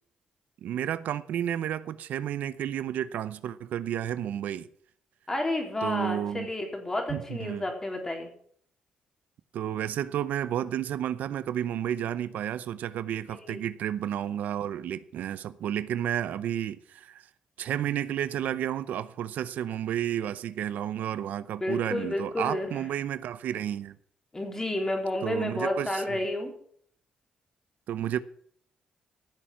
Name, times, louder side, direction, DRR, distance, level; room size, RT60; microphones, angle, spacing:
voice 1, 0.6-4.7 5.8-6.5 7.1-7.6 9.5-17.3 17.6-23.9 25.2-26.2 27.9-28.2, right 10 dB, 80° right, 0.6 m, -31 dB
voice 2, 5.3-8.3 13.3-13.6 21.6-22.8 24.3-26.5, left 1 dB, 20° left, 3.7 m, -31 dB
15.0 x 7.2 x 7.5 m
cardioid pair, 105°, 3 cm